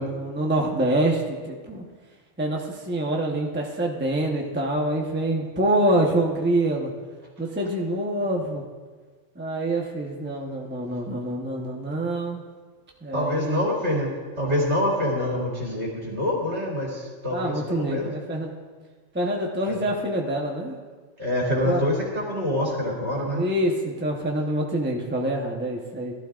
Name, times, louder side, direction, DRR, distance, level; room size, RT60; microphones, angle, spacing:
voice 1, 0.0-1.8 2.4-6.9 7.4-8.6 9.4-12.4 13.0-13.6 17.3-18.5 19.1-20.7 21.6-21.8 23.4-26.1, right 1 dB, 10° right, -1 dB, 0.9 m, -26 dB
voice 2, 13.1-14.1 14.4-18.1 19.7-19.8 21.2-23.4, left 1 dB, 60° right, -4 dB, 3.0 m, -26 dB
17.5 x 12.0 x 2.5 m, 1.5 s
omnidirectional pair, 1.3 m